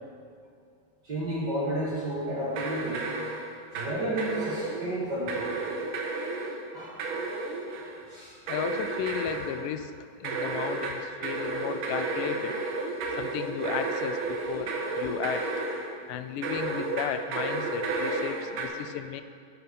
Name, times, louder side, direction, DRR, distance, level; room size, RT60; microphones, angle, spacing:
voice 1, 1.0-3.0 3.7-5.5 6.7-7.0 8.1-8.3, right 1 dB, 40° right, -7 dB, 1.8 m, -31 dB
sound 1, 2.5-3.9 4.2-4.9 5.3-6.6 7.0-8.0 8.5-9.6 10.2-15.9 16.4-18.7, right 3 dB, 75° right, 2.4 m, -32 dB
voice 2, 8.5-12.6 13.2-15.5 16.1-19.2, left 9 dB, 80° left, 10 dB, 2.0 m, -34 dB
13.5 x 4.6 x 5.3 m, 2.2 s
omnidirectional pair, 4.1 m